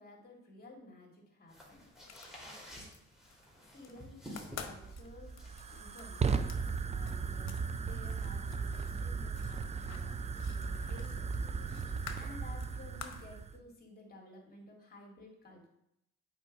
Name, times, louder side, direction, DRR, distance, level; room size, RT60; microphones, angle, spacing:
voice 1, 0.0-1.8 3.6-5.4 5.7-6.6 6.9-15.7, left 2 dB, 30° left, -1 dB, 2.2 m, -54 dB
sound 1, 1.5-6.5, equal, ahead, 2.3 m, -51 dB
sound 2, 1.9-3.0 3.3-3.9 4.2-7.6 7.9-13.3, left 7 dB, 60° left, 0.9 m, -50 dB
Fire, 4.6-13.6, right 5 dB, 25° right, 0.3 m, -36 dB
7.9 x 5.0 x 3.6 m, 0.81 s
cardioid pair, 90°, 30 cm